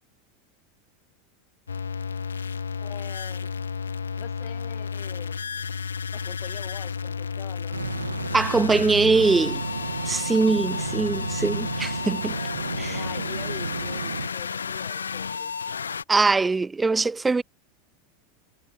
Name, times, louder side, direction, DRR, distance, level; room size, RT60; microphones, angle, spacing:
sound 1, 1.7-16.0, left 6 dB, 80° left, 0.7 m, -32 dB
voice 1, 2.8-3.5 4.2-5.4 6.1-7.8 12.9-15.5, left 21 dB, 50° left, 1.0 m, -43 dB
sound 2, 7.7-14.3, right 6 dB, 85° right, 1.4 m, -33 dB
voice 2, 8.3-9.6 10.1-12.4 12.8-13.0 16.1-17.4, right 4 dB, 15° right, 0.3 m, -22 dB
figure-of-eight pair, 85°, 0 cm